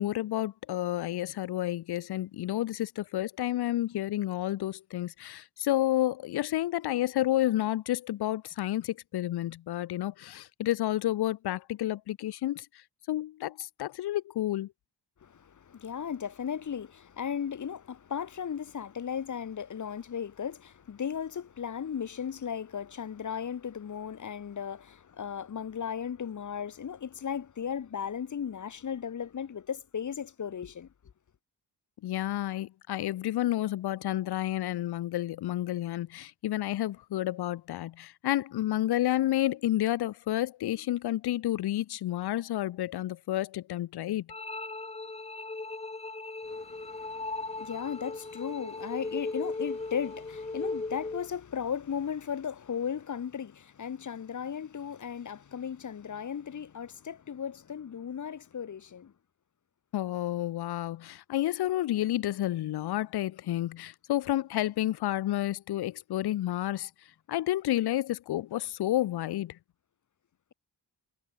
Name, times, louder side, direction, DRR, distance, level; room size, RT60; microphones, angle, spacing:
voice 1, 0.0-12.7 13.1-14.7 32.0-44.3 59.9-66.9 67.3-69.6, left 14 dB, 65° left, 0.5 m, -30 dB
voice 2, 15.2-30.9 46.5-59.1, left 7 dB, 45° left, 1.0 m, -36 dB
sound 1, 44.3-51.3, left 3 dB, 15° left, 0.9 m, -37 dB
wide cardioid pair, 165°, 42 cm